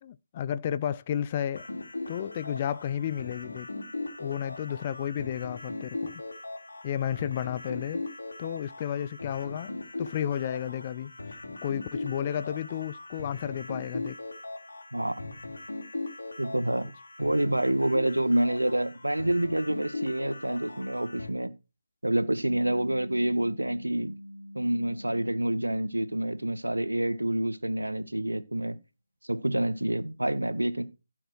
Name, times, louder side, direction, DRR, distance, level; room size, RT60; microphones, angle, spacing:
voice 1, 0.0-1.7 2.1-3.7 4.2-6.2 6.8-8.1 8.4-14.2, left 10 dB, 20° left, 0.5 m, -32 dB
sound 1, 1.5-21.3, left 2 dB, 65° left, 3.6 m, -39 dB
voice 2, 14.9-15.4 16.4-16.9 17.2-21.5 22.0-24.1 24.6-28.8 29.3-30.8, right 1 dB, 85° right, 1.8 m, -27 dB
sound 2, 22.5-27.1, equal, 55° right, 2.9 m, -46 dB
15.5 x 7.1 x 4.7 m
figure-of-eight pair, 160°, 0 cm